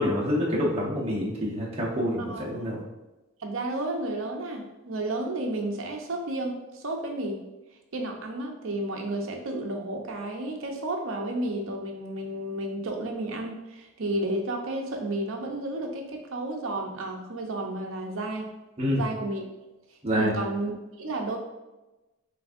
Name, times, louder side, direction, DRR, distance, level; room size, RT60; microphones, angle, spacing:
voice 1, 0.0-2.8 18.8-19.0 20.0-20.3, equal, 30° right, -5 dB, 0.9 m, -27 dB
voice 2, 2.2-2.6 3.4-7.4 7.9-18.5 18.9-19.4 20.1-21.4, right 1 dB, 65° right, 3 dB, 0.6 m, -32 dB
6.1 x 2.6 x 2.5 m, 1.1 s
head